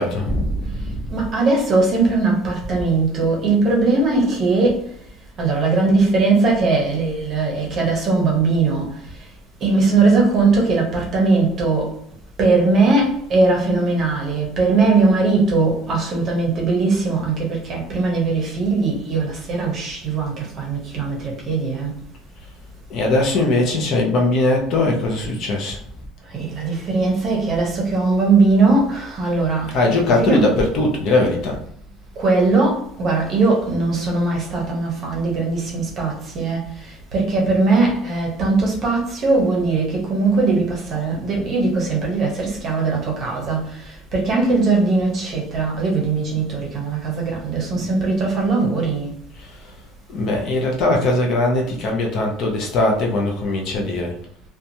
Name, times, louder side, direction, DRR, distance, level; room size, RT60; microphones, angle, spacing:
voice 1, 0.0-1.0 22.9-25.8 29.7-31.6 49.4-49.5 50.1-54.1, left 2 dB, 40° left, 0.5 m, -20 dB
voice 2, 1.1-4.8 5.4-8.9 9.6-11.9 12.4-21.9 26.3-30.5 32.2-49.1, right 3 dB, 30° right, 0.8 m, -20 dB
2.9 x 2.2 x 2.6 m
cardioid pair, 170°, 0 cm